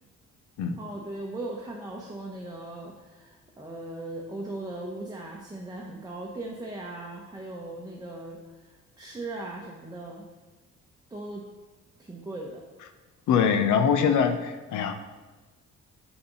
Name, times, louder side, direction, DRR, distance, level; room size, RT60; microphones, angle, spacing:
voice 1, 0.8-10.3 11.1-11.4 12.0-12.6, right 2 dB, 15° right, -2 dB, 0.9 m, -38 dB
voice 2, 13.3-14.9, left 7 dB, 75° left, 8 dB, 0.7 m, -23 dB
6.0 x 5.7 x 3.9 m, 1.2 s
cardioid pair, 90°, 30 cm